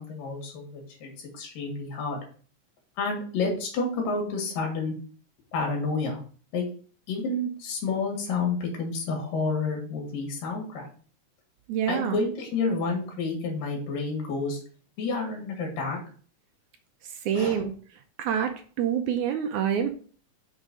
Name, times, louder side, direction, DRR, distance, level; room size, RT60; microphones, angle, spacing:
voice 1, 0.0-2.2 3.0-5.0 5.5-6.2 6.5-6.6 7.1-10.9 11.9-14.6 15.0-16.0 17.3-17.6, left 3 dB, 80° left, 0 dB, 3.4 m, -30 dB
voice 2, 11.7-12.2 17.3-17.7 18.2-18.5 18.8-19.9, right 8 dB, 75° right, 6 dB, 1.9 m, -26 dB
6.5 x 3.9 x 6.0 m, 0.43 s
omnidirectional pair, 3.9 m